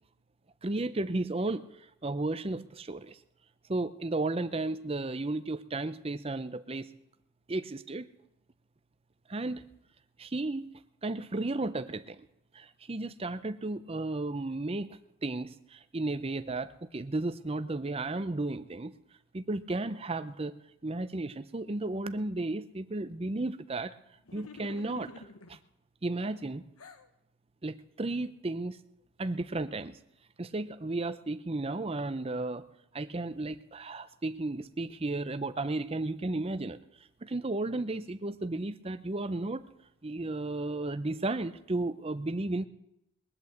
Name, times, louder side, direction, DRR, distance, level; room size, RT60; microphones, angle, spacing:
voice 1, 0.6-1.7 2.0-3.2 3.7-6.9 7.5-8.1 9.3-9.6 10.2-10.7 11.0-12.3 12.5-18.9 19.3-23.9 24.3-25.2 25.5-25.6 26.0-26.7 27.6-28.8 29.2-30.0 30.4-32.6 32.9-36.8 37.2-39.7 40.0-42.6, right 2 dB, 25° right, 11 dB, 0.6 m, -34 dB
sound 1, 24.3-25.6 26.2-27.1, left 3 dB, 85° left, 1.1 m, -49 dB
21.0 x 8.4 x 7.9 m, 0.84 s
head